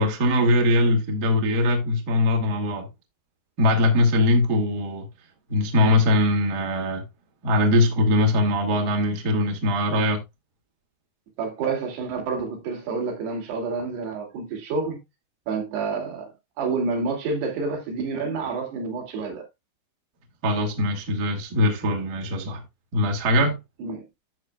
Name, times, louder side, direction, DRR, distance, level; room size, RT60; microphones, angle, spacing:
voice 1, 0.0-2.9 3.6-5.1 5.5-7.0 7.4-10.2 20.4-22.6 22.9-23.6, left 1 dB, 90° right, 0.8 m, -21 dB
voice 2, 11.4-15.0 15.5-16.3 16.6-19.5 23.8-24.0, right 4 dB, 65° right, 4.2 m, -28 dB
12.0 x 6.9 x 2.3 m
omnidirectional pair, 5.3 m